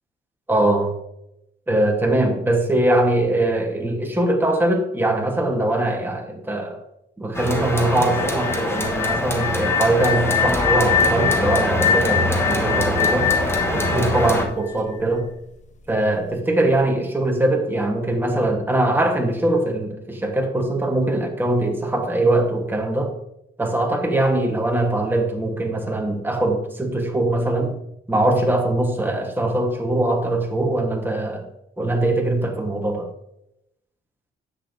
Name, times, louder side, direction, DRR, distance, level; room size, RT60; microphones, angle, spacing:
voice 1, 0.5-1.0 1.7-6.8 7.2-13.3 13.7-15.3 15.9-23.1 23.6-27.7 28.1-31.5 31.8-33.1, right 1 dB, 10° right, 2 dB, 1.3 m, -22 dB
sound 1, 7.3-14.5, left 1 dB, 10° left, 1.1 m, -24 dB
sound 2, 8.1-15.0, left 8 dB, 35° left, 0.9 m, -24 dB
9.9 x 8.0 x 2.7 m, 0.82 s
cardioid pair, 135°, 21 cm